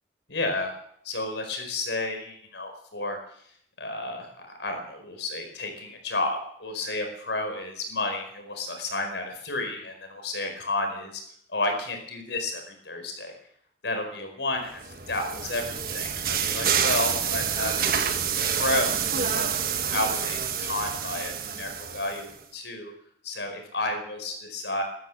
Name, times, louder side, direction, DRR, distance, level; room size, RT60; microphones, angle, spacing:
voice 1, 0.3-0.7 1.0-3.2 3.8-4.3 4.6-11.2 11.5-13.3 13.8-18.1 18.5-19.6 19.9-22.3 22.5-22.9 23.2-24.8, left 2 dB, 80° left, 4 dB, 4.9 m, -31 dB
sound 1, 14.8-22.3, right 7 dB, 55° right, 1.5 m, -28 dB
13.5 x 13.5 x 7.3 m, 0.69 s
head